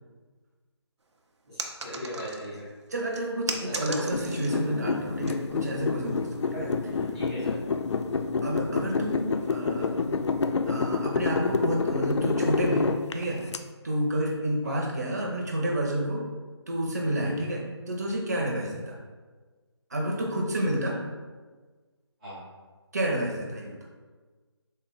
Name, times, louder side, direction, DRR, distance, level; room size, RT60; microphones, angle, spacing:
voice 1, 1.5-2.7 3.6-4.2 6.5-6.8 7.1-7.6 14.6-14.8 22.2-22.4, equal, ahead, -21 dB, 0.7 m, -38 dB
sound 1, 1.6-2.6 3.1-4.6 5.0-5.3 5.9-6.2, right 3 dB, 85° right, 0.7 m, -36 dB
voice 2, 2.9-6.7 8.4-10.2 10.7-13.4 13.8-16.2 16.7-19.0 19.9-21.0 22.9-23.8, right 1 dB, 35° right, -1 dB, 0.8 m, -30 dB
sound 2, 4.1-13.6, left 4 dB, 85° left, 0.4 m, -28 dB
4.0 x 3.4 x 3.9 m, 1.4 s
figure-of-eight pair, 175°, 14 cm